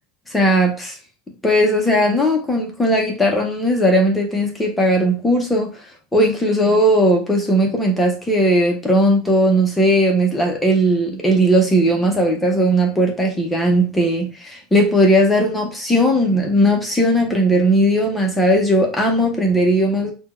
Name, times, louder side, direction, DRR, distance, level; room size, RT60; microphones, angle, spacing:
voice 1, 0.3-1.0 1.4-20.1, equal, 5° left, 1 dB, 0.6 m, -17 dB
4.0 x 2.1 x 4.2 m, 0.33 s
supercardioid pair, 180°, 0 cm